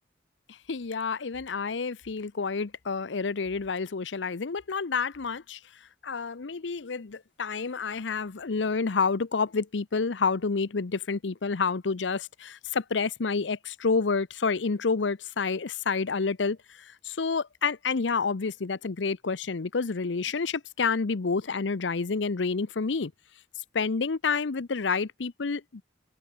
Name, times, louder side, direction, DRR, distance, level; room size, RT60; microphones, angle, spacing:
voice 1, 0.7-5.6 6.0-16.6 17.0-23.1 23.7-25.8, left 4 dB, 85° left, 0.7 m, -29 dB
head